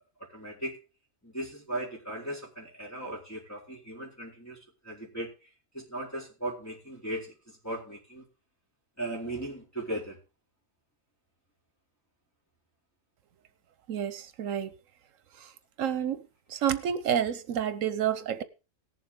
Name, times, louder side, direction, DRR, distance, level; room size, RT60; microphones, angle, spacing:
voice 1, 0.3-0.8 1.2-4.6 4.8-5.3 5.7-8.2 9.0-10.2, right 1 dB, 10° left, 4.0 m, -37 dB
voice 2, 13.9-14.8 15.4-15.5 15.8-16.2 16.5-18.4, right 9 dB, 85° right, 1.2 m, -29 dB
18.0 x 7.4 x 3.7 m
omnidirectional pair, 1.3 m